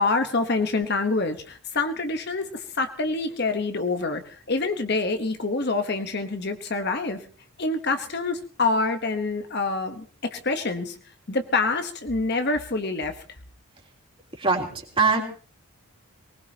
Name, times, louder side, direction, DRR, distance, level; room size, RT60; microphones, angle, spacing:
voice 1, 0.0-7.2 7.6-11.0 11.3-13.1, left 3 dB, 45° left, 7 dB, 1.1 m, -26 dB
voice 2, 14.4-15.2, right 4 dB, 25° right, 0 dB, 3.4 m, -22 dB
23.0 x 20.0 x 2.9 m, 0.43 s
head